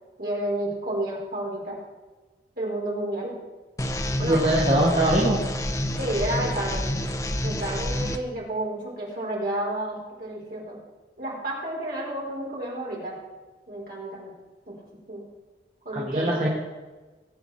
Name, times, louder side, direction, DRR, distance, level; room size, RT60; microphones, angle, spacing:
voice 1, 0.2-1.8 2.6-3.3 4.2-4.4 6.0-7.0 7.4-10.8 11.2-13.2 13.7-14.3 14.7-14.8 15.1-15.3 15.8-16.5, right 1 dB, 50° right, -4 dB, 5.2 m, -31 dB
sound 1, 3.8-8.2, left 1 dB, 20° left, 0.7 m, -28 dB
voice 2, 4.2-5.4 15.9-16.5, right 1 dB, 35° right, -5 dB, 2.1 m, -22 dB
21.5 x 8.7 x 4.5 m, 1.3 s
head